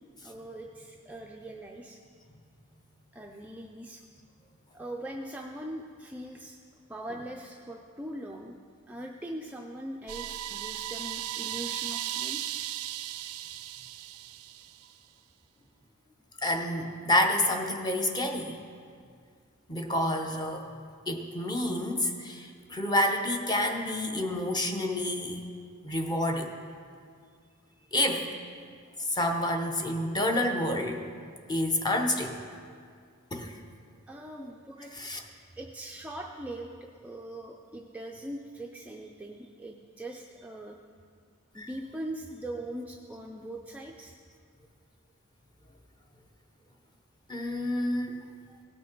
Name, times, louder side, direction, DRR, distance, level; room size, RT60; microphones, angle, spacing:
voice 1, 0.2-2.0 3.1-4.0 4.7-6.6 6.9-8.6 8.9-12.4 34.1-34.9 35.6-40.8 41.5-44.2, right 1 dB, 5° right, 0 dB, 0.4 m, -41 dB
sound 1, 10.1-14.9, right 12 dB, 85° right, 0.4 m, -36 dB
voice 2, 16.4-18.6 19.7-20.7 21.1-25.4 25.8-26.5 27.9-28.3 29.1-31.1 31.5-32.4 33.3-33.6 34.9-35.2 41.6-41.8 47.3-48.2, left 1 dB, 20° left, 3 dB, 0.8 m, -29 dB
17.0 x 6.2 x 4.5 m, 2.1 s
head